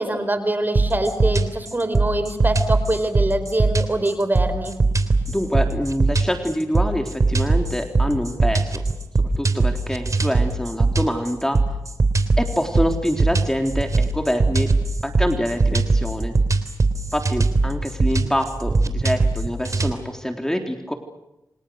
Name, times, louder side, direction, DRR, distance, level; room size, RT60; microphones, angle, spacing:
voice 1, 0.0-4.8, right 1 dB, 25° right, 10 dB, 4.6 m, -24 dB
sound 1, 0.8-19.9, right 3 dB, 50° right, 3.3 m, -21 dB
voice 2, 5.3-8.8 9.4-11.6 12.4-14.7 15.0-16.4 17.1-20.9, equal, 5° left, 4 dB, 3.8 m, -25 dB
29.5 x 26.0 x 6.6 m, 0.90 s
cardioid pair, 65°, 7 cm